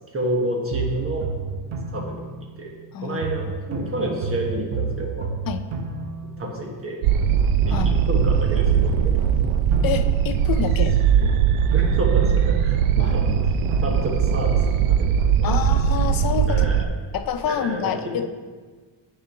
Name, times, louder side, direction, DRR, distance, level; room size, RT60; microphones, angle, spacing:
voice 1, 0.1-1.3 1.9-2.3 2.6-2.7 3.0-5.3 6.4-7.0 7.6-9.3 11.1-11.3 11.7-13.5 13.8-15.7 16.5-16.9 17.4-17.9, right 1 dB, 30° right, -1 dB, 1.3 m, -29 dB
sound 1, 0.7-2.9 3.2-6.9 7.2-10.9 11.2-14.9 15.2-16.8, right 4 dB, 70° right, 0.9 m, -31 dB
sound 2, 7.0-16.9, right 8 dB, 85° right, 0.5 m, -20 dB
voice 2, 9.8-11.0 13.0-13.2 15.4-16.7 17.1-18.3, left 8 dB, 45° left, 8 dB, 0.5 m, -27 dB
9.3 x 5.0 x 3.7 m, 1.4 s
cardioid pair, 150°, 48 cm